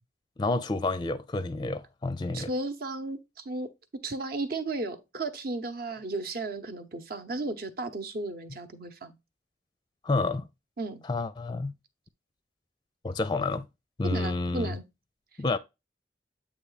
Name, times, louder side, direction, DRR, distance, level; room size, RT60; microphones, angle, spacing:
voice 1, 0.4-2.5 10.0-10.5 11.0-11.7 13.0-13.7 14.0-14.8 15.4-15.6, left 3 dB, 25° left, 0.4 m, -29 dB
voice 2, 2.3-3.2 3.4-9.1 10.8-11.0 14.0-14.8, right 2 dB, 60° right, 1.0 m, -34 dB
8.3 x 3.0 x 4.0 m
head